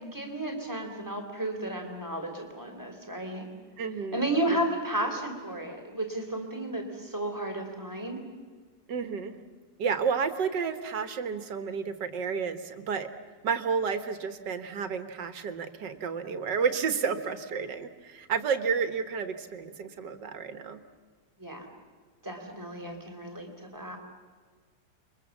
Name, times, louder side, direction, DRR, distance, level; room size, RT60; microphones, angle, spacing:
voice 1, 0.0-3.4 4.1-8.2 21.4-21.7 22.2-24.0, right 1 dB, 10° right, 3 dB, 3.6 m, -33 dB
voice 2, 3.8-4.6 8.9-9.3 9.8-13.1 13.4-20.8 22.8-23.0, right 6 dB, 85° right, 10 dB, 2.0 m, -31 dB
29.0 x 23.5 x 7.3 m, 1.5 s
omnidirectional pair, 1.8 m